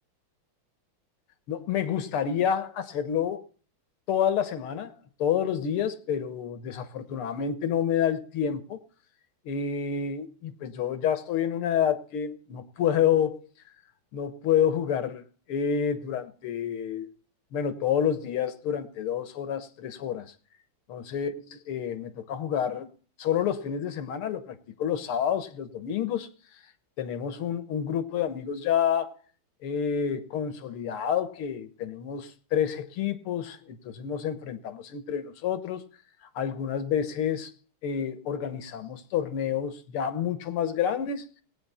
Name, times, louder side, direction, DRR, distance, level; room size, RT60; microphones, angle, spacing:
voice 1, 1.5-3.4 4.1-4.9 5.2-8.8 9.5-13.4 14.1-15.2 15.5-17.1 17.5-20.3 20.9-22.9 23.2-26.3 27.0-29.1 29.6-35.8 36.4-37.5 37.8-41.3, left 8 dB, 90° left, 2.1 m, -28 dB
19.0 x 9.0 x 4.2 m
omnidirectional pair, 2.3 m